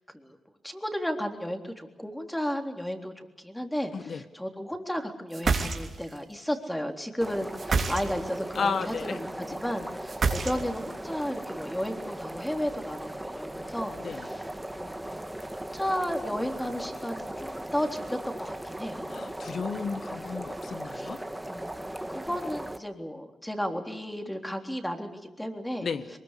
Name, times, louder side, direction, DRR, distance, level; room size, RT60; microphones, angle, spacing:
voice 1, 0.6-14.4 14.7-14.9 15.5-19.1 20.9-21.1 21.5-25.9, equal, 5° left, 4 dB, 3.7 m, -33 dB
sound 1, 5.3-6.2 7.6-8.4 10.1-10.9, right 4 dB, 55° right, 3.1 m, -27 dB
sound 2, 7.2-22.8, right 1 dB, 10° right, 1.9 m, -38 dB
voice 2, 8.5-9.2 14.0-14.3 19.1-21.2 25.8-26.1, left 5 dB, 65° left, 11 dB, 1.3 m, -33 dB
23.0 x 21.5 x 8.4 m, 1.1 s
supercardioid pair, 50°, 0 cm